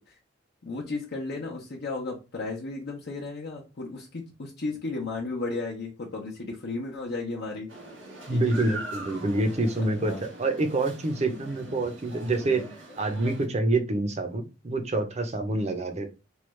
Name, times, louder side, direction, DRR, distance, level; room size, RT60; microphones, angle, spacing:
voice 1, 0.6-7.7 8.3-8.8 10.0-10.2 11.2-11.5 11.8-11.9 12.4-12.7 15.5-15.8, left 3 dB, 60° left, -2 dB, 0.7 m, -34 dB
sound 1, 7.7-13.5, right 2 dB, 85° right, 1.3 m, -42 dB
voice 2, 8.3-10.1 10.4-12.6 13.0-16.1, right 2 dB, 35° right, 6 dB, 0.6 m, -27 dB
3.1 x 2.3 x 3.1 m, 0.29 s
head